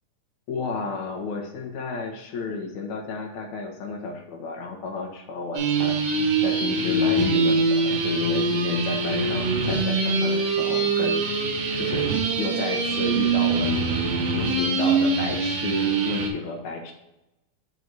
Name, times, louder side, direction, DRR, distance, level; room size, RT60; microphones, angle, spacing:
voice 1, 0.5-6.0 6.4-11.4 11.8-12.1 12.4-16.9, left 4 dB, 75° left, 1 dB, 2.3 m, -32 dB
sound 1, 5.5-16.3, right 3 dB, 80° right, 3.1 m, -23 dB
9.4 x 3.9 x 4.5 m, 0.91 s
omnidirectional pair, 3.6 m